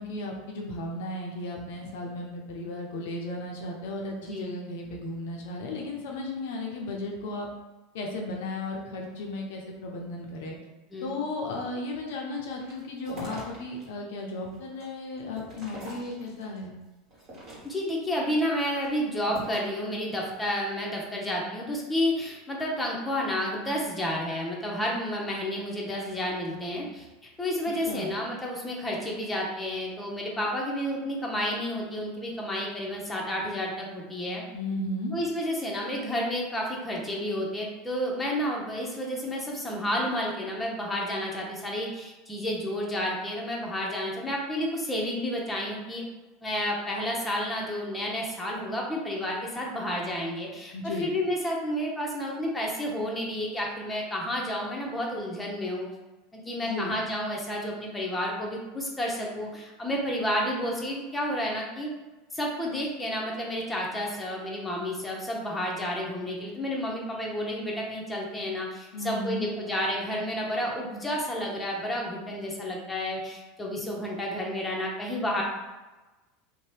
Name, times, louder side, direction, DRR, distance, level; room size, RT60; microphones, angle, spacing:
voice 1, 0.0-7.5 7.9-10.6 11.0-16.8 27.9-28.1 34.5-35.2 50.7-51.1 56.6-56.9 68.9-69.5, left 2 dB, 70° left, 0 dB, 0.5 m, -35 dB
voice 2, 4.2-4.5 10.9-11.1 17.6-27.1 27.4-34.4 35.1-46.0 46.4-55.9 56.3-61.9 62.3-75.4, equal, 10° left, -2 dB, 0.8 m, -31 dB
sound 1, 12.6-13.8 14.3-16.6 17.1-18.0 18.5-19.8, right 1 dB, 45° right, 1.2 m, -43 dB
2.6 x 2.1 x 3.2 m, 1.1 s
hypercardioid pair, 90°, 0 cm